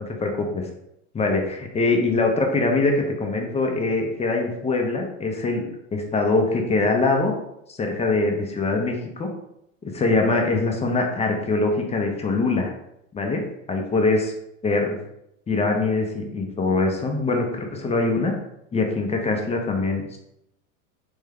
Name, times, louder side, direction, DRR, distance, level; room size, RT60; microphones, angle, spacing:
voice 1, 0.1-0.7 1.1-5.6 5.9-7.3 7.8-9.3 9.8-12.7 13.1-13.4 13.7-14.3 14.6-15.0 15.5-18.3 18.7-20.2, left 3 dB, 15° left, 2 dB, 0.6 m, -23 dB
3.5 x 2.2 x 3.4 m, 0.80 s
hypercardioid pair, 95°, 40 cm